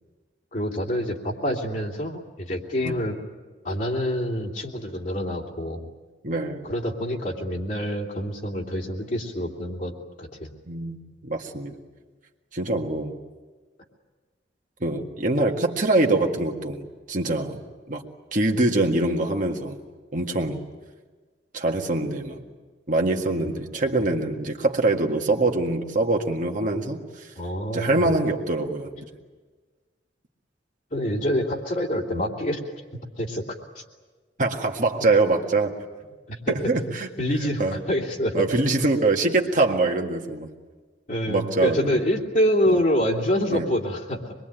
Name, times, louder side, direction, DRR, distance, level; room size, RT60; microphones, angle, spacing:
voice 1, 0.5-3.2 3.6-5.9 6.6-10.5 23.4-23.7 27.4-28.2 30.9-32.6 33.2-33.8 36.3-36.5 36.8-36.9 37.2-38.5 41.1-44.3, equal, 45° left, -1 dB, 2.8 m, -26 dB
voice 2, 6.2-6.7 10.7-11.0 11.2-11.7 12.5-13.2 14.8-16.8 17.1-17.6 17.9-18.0 18.3-19.8 20.1-20.6 21.5-22.4 22.9-27.3 27.7-29.1 34.4-35.7 36.5-37.1 37.4-37.8 38.3-40.5 41.3-42.0 42.7-42.8 43.5-43.7, right 2 dB, 45° right, 2 dB, 1.8 m, -24 dB
25.5 x 22.0 x 9.1 m, 1.4 s
head